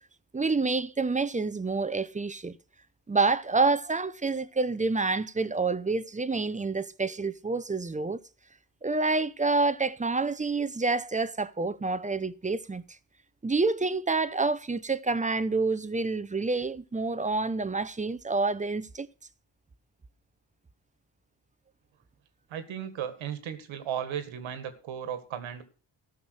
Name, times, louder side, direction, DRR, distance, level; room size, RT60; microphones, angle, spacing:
voice 1, 0.3-2.6 3.1-8.2 8.8-12.8 13.4-19.1, right 3 dB, 15° right, 0.6 m, -28 dB
voice 2, 22.5-25.6, right 9 dB, 80° right, 1.9 m, -35 dB
14.0 x 5.9 x 6.3 m
cardioid pair, 75°, 46 cm